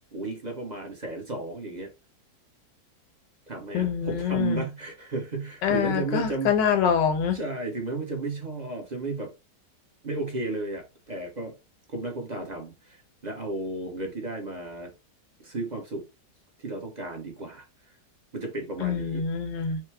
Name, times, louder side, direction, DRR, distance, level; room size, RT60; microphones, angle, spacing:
voice 1, 0.1-1.9 3.5-6.5 7.3-9.3 10.0-11.5 11.9-14.9 15.4-16.0 16.6-17.6 18.3-19.2, right 2 dB, 30° right, 0.8 m, -33 dB
voice 2, 3.7-4.6 5.6-7.4 18.8-19.8, left 7 dB, 85° left, 1.5 m, -25 dB
4.7 x 2.1 x 4.5 m
omnidirectional pair, 1.9 m